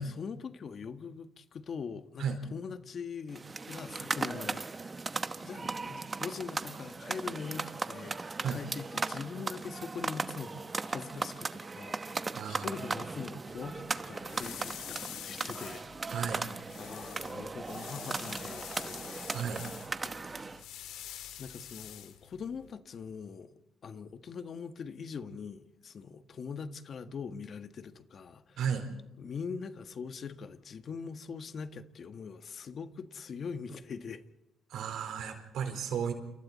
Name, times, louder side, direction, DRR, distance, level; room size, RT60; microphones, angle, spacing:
voice 1, 0.2-2.3 2.5-5.1 5.4-8.2 8.5-15.8 16.2-19.2 20.0-20.5 21.4-23.5 23.8-28.6 29.2-34.2, left 5 dB, 50° left, 1.6 m, -42 dB
sound 1, 3.3-20.6, right 3 dB, 30° right, 1.0 m, -38 dB
voice 2, 12.3-12.8 16.1-16.5 19.3-19.7 28.6-28.9 34.7-36.1, right 7 dB, 80° right, 4.3 m, -34 dB
sound 2, 13.5-22.7, left 11 dB, 90° left, 2.5 m, -47 dB
29.0 x 28.5 x 4.2 m
cardioid pair, 90°, 0 cm